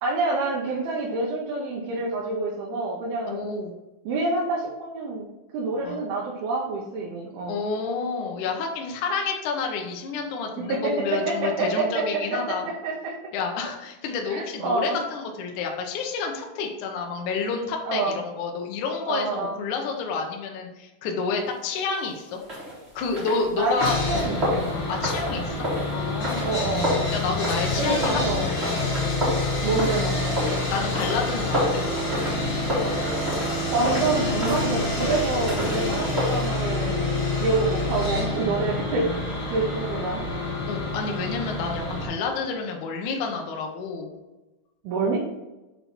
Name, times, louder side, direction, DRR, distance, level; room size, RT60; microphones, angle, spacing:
voice 1, 0.0-3.5 4.1-5.3 5.5-7.6 10.6-12.4 12.8-13.1 14.3-15.0 17.9-18.2 19.1-19.6 23.5-24.7 26.4-26.9 27.8-28.5 29.6-30.4 33.0-33.4 33.7-37.1 37.4-39.1 39.5-40.2 44.8-45.2, right 3 dB, 85° right, -3 dB, 2.9 m, -27 dB
voice 2, 3.3-3.7 5.8-6.0 7.5-12.7 13.3-22.4 23.0-24.3 24.9-26.6 27.1-28.6 30.7-31.9 40.7-44.1, left 4 dB, 70° left, 2 dB, 2.0 m, -29 dB
sound 1, 22.4-36.5, equal, 20° right, 1.8 m, -31 dB
Sawing, 23.8-42.1, left 2 dB, 40° left, 2.7 m, -27 dB
7.0 x 4.2 x 4.3 m, 1.0 s
omnidirectional pair, 4.3 m